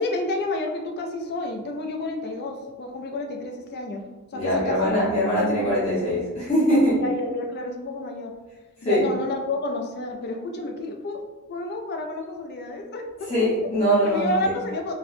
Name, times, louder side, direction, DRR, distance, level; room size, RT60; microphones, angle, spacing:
voice 1, 0.0-4.9 5.2-5.8 6.1-6.2 7.0-8.3 8.8-13.3 14.0-14.9, left 2 dB, 45° left, 3 dB, 0.4 m, -30 dB
voice 2, 4.3-7.0 8.8-9.1 13.3-14.5, equal, 25° left, -10 dB, 0.9 m, -22 dB
4.1 x 2.1 x 2.5 m, 1.2 s
head